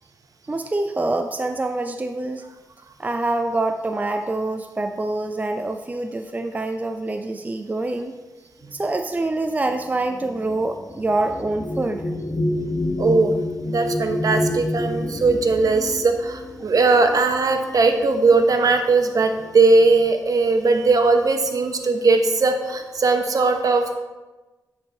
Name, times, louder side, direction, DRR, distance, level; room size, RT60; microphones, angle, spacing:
voice 1, 0.5-2.5 3.0-8.1 8.7-12.0, right 2 dB, 25° right, 7 dB, 0.5 m, -25 dB
sound 1, 8.9-17.8 18.7-18.9 19.2-19.8, left 1 dB, 30° left, 0.8 m, -29 dB
voice 2, 13.0-13.3 13.6-23.9, right 3 dB, 60° right, 6 dB, 0.9 m, -19 dB
8.9 x 4.2 x 4.3 m, 1.2 s
cardioid pair, 50°, 7 cm